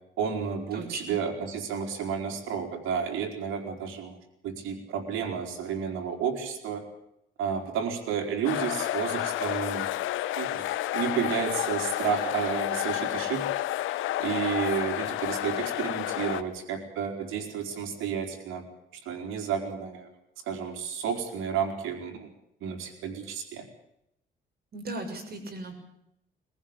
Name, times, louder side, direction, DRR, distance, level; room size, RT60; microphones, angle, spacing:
voice 1, 0.2-4.2 4.4-6.8 7.4-9.9 10.4-10.7 10.9-13.4 14.2-18.6 19.1-20.1 20.5-22.3 22.6-23.7, right 7 dB, 85° right, 4 dB, 4.2 m, -31 dB
voice 2, 0.7-1.2 24.7-25.8, right 2 dB, 50° right, 6 dB, 6.5 m, -37 dB
sound 1, 8.4-16.4, left 14 dB, 90° left, 1.1 m, -30 dB
22.0 x 15.0 x 8.7 m, 0.79 s
cardioid pair, 90°, 20 cm